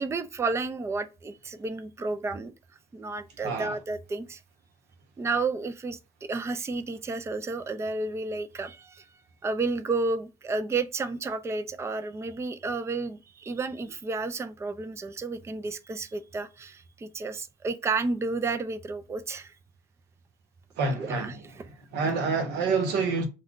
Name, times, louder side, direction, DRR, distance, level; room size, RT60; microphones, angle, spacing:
voice 1, 0.0-2.5 2.9-4.4 5.2-9.1 9.4-19.5 21.0-21.7, right 3 dB, 15° right, 0.4 m, -31 dB
voice 2, 3.4-3.7 20.8-21.4 21.9-23.2, right 4 dB, 85° right, 1.0 m, -27 dB
2.4 x 2.2 x 3.6 m
cardioid pair, 110°, 17 cm